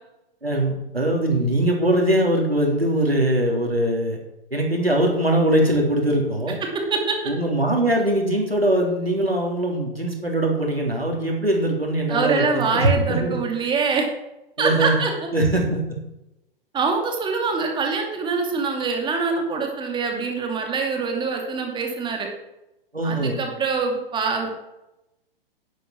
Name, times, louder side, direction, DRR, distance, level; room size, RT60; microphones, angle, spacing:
voice 1, 0.4-4.2 4.5-6.6 7.3-13.4 14.6-15.0 15.3-16.0 22.9-23.4, right 1 dB, 90° right, 0 dB, 3.5 m, -21 dB
voice 2, 6.6-7.2 12.1-14.1 14.6-15.3 16.7-22.3 23.0-24.5, right 4 dB, 15° right, 2 dB, 2.6 m, -24 dB
10.5 x 9.9 x 7.2 m, 0.91 s
figure-of-eight pair, 110°, 29 cm